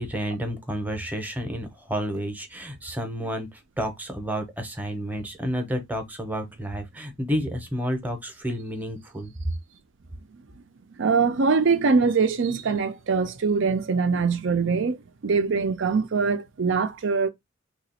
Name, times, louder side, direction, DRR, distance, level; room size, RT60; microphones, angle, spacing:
voice 1, 0.0-9.3, equal, 10° right, 0.7 m, -30 dB
voice 2, 10.9-17.3, right 5 dB, 65° right, 0.5 m, -23 dB
2.8 x 2.3 x 4.2 m
head